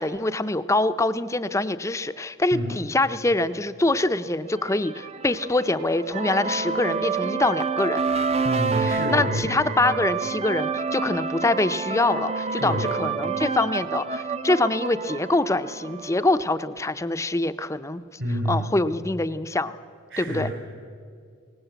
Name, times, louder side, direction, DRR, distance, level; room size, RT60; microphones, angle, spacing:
voice 1, 0.0-8.0 8.8-18.0 18.5-19.7 20.2-20.5, left 2 dB, 15° left, 11 dB, 0.6 m, -24 dB
sound 1, 4.6-16.3, right 4 dB, 30° right, 0.6 m, -29 dB
voice 2, 8.4-9.7 12.6-12.9 18.2-18.7 20.1-20.5, equal, 65° right, 1 dB, 3.5 m, -28 dB
22.0 x 19.0 x 8.1 m, 2.2 s
head